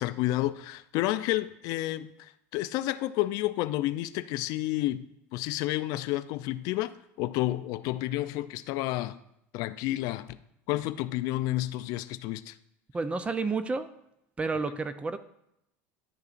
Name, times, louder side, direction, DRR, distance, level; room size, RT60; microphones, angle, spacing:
voice 1, 0.0-5.1 5.3-9.2 9.5-10.4 10.7-12.6, left 16 dB, 60° left, 0.4 m, -30 dB
voice 2, 12.9-13.9 14.4-15.2, right 4 dB, 15° right, 0.4 m, -30 dB
11.0 x 6.7 x 2.5 m
supercardioid pair, 120°, 7 cm